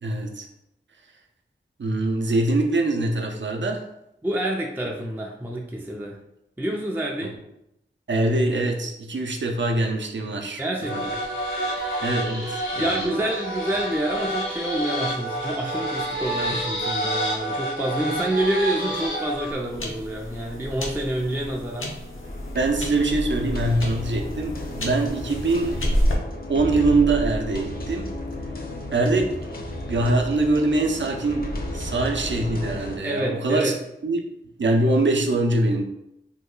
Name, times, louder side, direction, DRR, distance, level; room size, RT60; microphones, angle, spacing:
voice 1, 0.0-0.5 1.8-3.8 7.2-7.3 8.1-10.6 10.9-11.0 12.0-13.1 22.5-24.5 24.8-25.8 26.5-28.1 28.9-29.3 29.9-31.5 31.7-33.7 34.0-34.2 34.6-35.8, right 2 dB, 65° right, 2 dB, 0.5 m, -23 dB
voice 2, 4.2-6.2 6.6-7.4 10.6-11.9 12.7-21.9 33.0-33.8, right 1 dB, 10° right, 0 dB, 0.3 m, -28 dB
sound 1, 10.8-19.5, right 1 dB, 75° left, 0.9 m, -28 dB
sound 2, 18.8-26.1, equal, 90° left, 0.6 m, -31 dB
sound 3, 22.2-33.0, left 1 dB, 45° left, 0.6 m, -33 dB
2.8 x 2.2 x 3.7 m, 0.84 s
wide cardioid pair, 55°, 20 cm